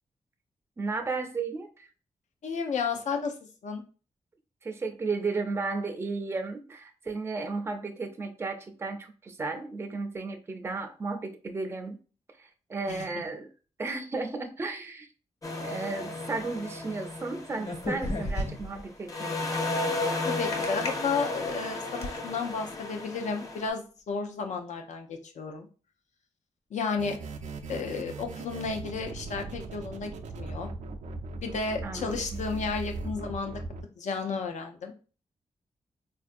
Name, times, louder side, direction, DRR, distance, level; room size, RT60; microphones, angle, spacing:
voice 1, 0.8-1.9 4.6-12.0 12.4-13.5 13.8-15.1 15.6-19.5 31.8-32.1, right 3 dB, 20° right, 5 dB, 0.4 m, -34 dB
voice 2, 2.4-3.4 3.6-3.8 12.9-13.1 20.3-25.7 26.7-27.2 27.7-30.7 31.4-33.6 34.0-34.9, left 5 dB, 90° left, 4 dB, 0.6 m, -32 dB
sound 1, 15.4-18.8 19.1-23.7, left 2 dB, 30° left, 0.6 m, -34 dB
sound 2, 17.6-18.8 20.5-20.9 21.5-22.2, left 1 dB, 60° left, 1.3 m, -32 dB
sound 3, 27.0-33.8, right 3 dB, 90° right, 0.4 m, -39 dB
4.4 x 2.5 x 2.5 m, 0.37 s
wide cardioid pair, 150°, 12 cm